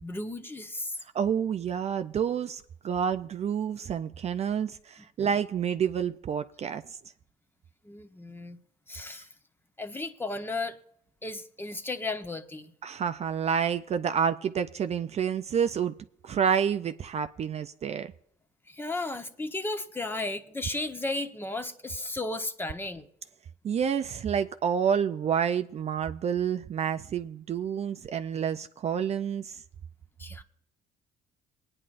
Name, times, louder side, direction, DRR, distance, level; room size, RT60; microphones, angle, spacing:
voice 1, 0.0-1.0 7.8-8.6 8.9-9.3 9.8-10.8 11.2-12.7 18.7-23.1 30.2-30.4, left 2 dB, 15° left, 1.0 m, -34 dB
voice 2, 1.1-7.0 12.8-15.9 16.2-18.1 23.6-29.6, right 7 dB, 40° right, 0.4 m, -29 dB
20.5 x 9.8 x 2.6 m
cardioid pair, 110°, 17 cm